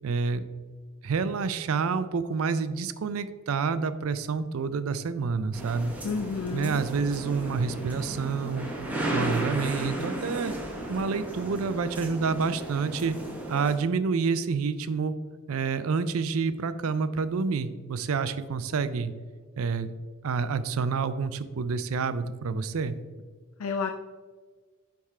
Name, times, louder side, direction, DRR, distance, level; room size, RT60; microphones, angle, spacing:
voice 1, 0.0-0.5 1.0-5.9 6.5-8.7 9.1-10.5 10.9-13.2 13.5-15.1 15.5-19.1 19.6-19.9 20.2-23.0, right 5 dB, 70° right, 13 dB, 0.4 m, -28 dB
sound 1, 5.5-13.8, right 1 dB, 5° right, 0.9 m, -34 dB
voice 2, 6.0-6.8 23.6-23.9, left 5 dB, 85° left, 5 dB, 0.4 m, -30 dB
9.5 x 3.5 x 4.3 m, 1.4 s
head